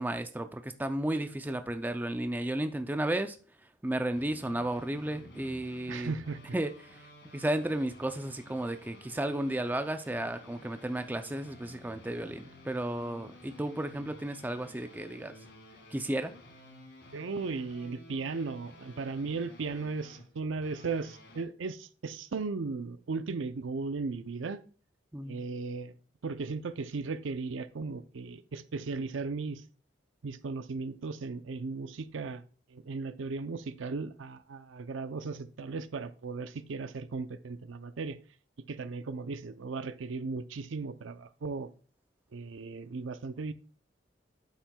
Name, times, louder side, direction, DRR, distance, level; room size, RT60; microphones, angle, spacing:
voice 1, 0.0-3.4 3.8-6.1 6.5-6.7 7.3-15.3 15.9-16.3 25.1-25.4, right 1 dB, 10° right, 0.4 m, -33 dB
sound 1, 4.1-21.4, left 1 dB, 65° left, 1.9 m, -53 dB
voice 2, 5.9-6.6 17.1-24.6 25.3-25.9 26.2-29.6 30.2-32.4 32.7-38.2 38.7-41.7 42.3-43.5, right 4 dB, 85° right, 0.5 m, -36 dB
8.9 x 7.3 x 2.3 m
head